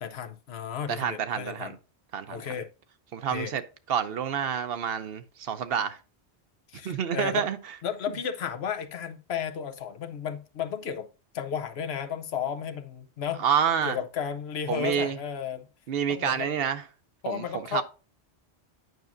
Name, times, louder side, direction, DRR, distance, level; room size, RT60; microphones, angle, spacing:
voice 1, 0.0-1.7 2.3-2.7 3.3-3.5 6.7-7.5 7.8-11.1 11.3-13.4 13.8-15.7 16.1-16.5 17.2-17.8, left 8 dB, 70° left, 1.0 m, -33 dB
voice 2, 0.9-1.7 2.1-2.5 3.1-3.6 3.9-6.0 6.8-7.6 8.1-8.2 13.4-14.0 14.7-15.2 15.9-16.8 17.3-17.8, right 8 dB, 65° right, 0.8 m, -28 dB
9.2 x 5.9 x 2.6 m
omnidirectional pair, 1.1 m